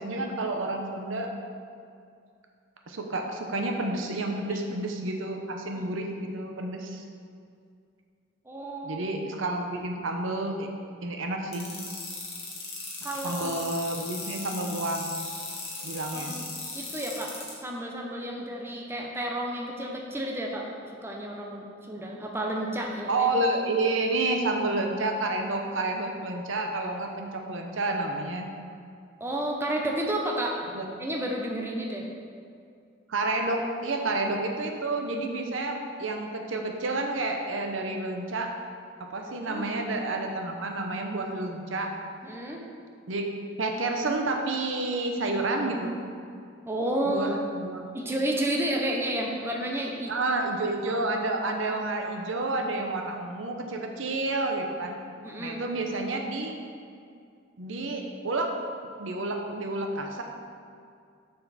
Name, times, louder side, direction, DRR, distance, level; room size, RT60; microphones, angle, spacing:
voice 1, 0.0-1.3 2.9-7.0 8.8-10.7 11.0-11.7 13.2-15.2 15.8-16.4 23.1-28.5 30.7-30.8 33.1-38.5 39.0-41.9 43.1-43.3 43.6-46.0 47.0-47.8 50.1-55.0 55.4-56.5 57.6-58.5 59.0-60.2, right 2 dB, 80° right, 3 dB, 0.8 m, -30 dB
voice 2, 8.5-9.0 13.0-13.6 16.1-16.5 16.7-17.3 17.6-23.3 29.2-30.6 31.0-32.1 39.3-39.6 42.2-42.6 46.7-47.4 47.9-50.2 50.9-51.0 55.2-55.6, right 1 dB, 10° right, 0 dB, 0.6 m, -31 dB
sound 1, 11.5-17.5, left 4 dB, 30° left, 1.6 m, -37 dB
6.8 x 6.5 x 4.1 m, 2.3 s
head